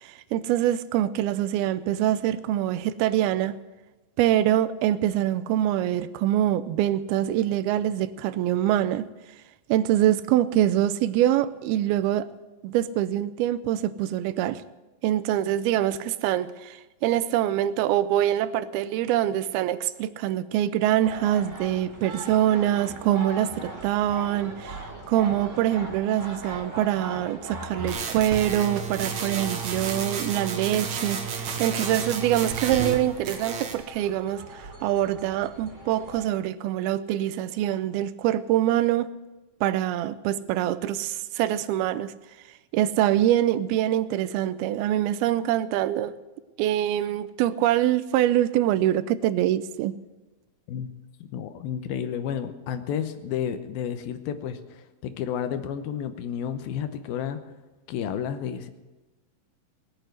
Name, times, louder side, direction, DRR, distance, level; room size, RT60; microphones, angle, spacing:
voice 1, 0.0-3.6 4.2-9.0 9.7-12.3 12.6-14.6 15.0-24.8 25.1-39.1 39.6-42.1 42.7-46.1 46.6-50.0, right 12 dB, 85° right, 15 dB, 2.6 m, -24 dB
sound 1, 21.0-36.3, right 1 dB, 20° right, 2.8 m, -40 dB
sound 2, 27.9-33.0 33.3-33.8, right 6 dB, 60° right, 2.5 m, -31 dB
voice 2, 51.2-57.4 57.9-58.7, left 8 dB, 80° left, 10 dB, 2.6 m, -31 dB
19.0 x 8.9 x 8.0 m, 1.1 s
omnidirectional pair, 4.4 m